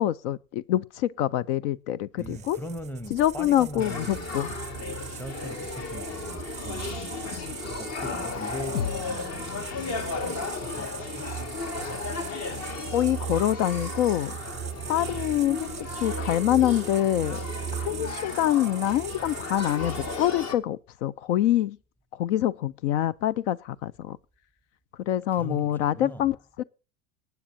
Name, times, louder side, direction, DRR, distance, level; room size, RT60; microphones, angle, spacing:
voice 1, 0.0-2.6 3.1-4.5 7.4-7.5 12.9-14.3 14.9-17.4 17.7-21.8 22.2-24.2 25.1-26.6, left 12 dB, 65° left, 0.6 m, -25 dB
voice 2, 2.2-4.4 5.1-7.5 7.8-11.4 25.3-26.3, left 1 dB, 5° left, 1.0 m, -40 dB
sound 1, 2.2-20.5, right 10 dB, 20° right, 0.5 m, -39 dB
Male speech man speaking / Child speech kid speaking / Conversation, 3.8-20.5, left 4 dB, 40° left, 1.8 m, -35 dB
sound 2, 8.7-12.7, left 7 dB, 85° left, 0.9 m, -39 dB
19.5 x 9.2 x 2.7 m
hypercardioid pair, 100°, 38 cm